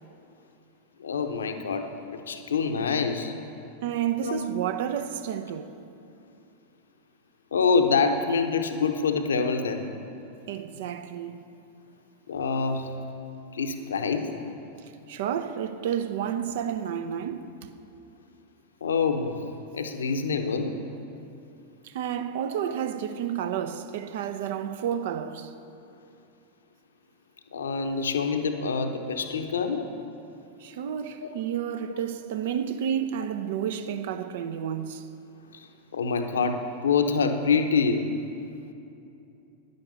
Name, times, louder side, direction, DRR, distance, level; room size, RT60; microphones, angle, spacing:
voice 1, 1.0-1.9 2.3-3.3 4.2-4.4 7.5-9.8 12.3-12.9 13.5-14.3 18.8-19.4 19.7-20.8 27.5-29.9 31.2-31.3 35.5-35.7 35.9-38.1, left 5 dB, 70° left, 0.9 m, -26 dB
voice 2, 3.8-5.8 10.5-11.4 15.1-17.7 21.8-25.5 30.6-35.1, right 9 dB, 55° right, 0.6 m, -31 dB
10.5 x 10.5 x 6.8 m
figure-of-eight pair, 90°, 0 cm